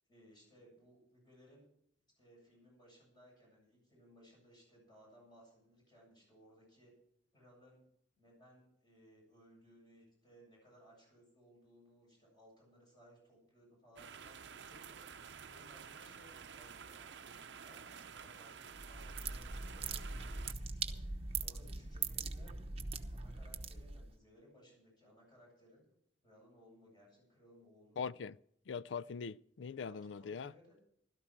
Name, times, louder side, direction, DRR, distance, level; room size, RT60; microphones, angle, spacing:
voice 1, 0.1-1.7 2.2-6.9 7.3-7.8 8.2-15.1 15.4-22.5 23.1-25.8 26.2-28.1 29.8-30.9, equal, 25° left, 7.9 m, -63 dB
sound 1, 14.0-20.5, right 6 dB, 75° right, 0.7 m, -51 dB
sound 2, 18.7-24.1, right 4 dB, 35° right, 1.0 m, -41 dB
voice 2, 28.0-28.3 28.7-30.5, left 5 dB, 90° left, 0.4 m, -42 dB
16.5 x 12.5 x 4.5 m
head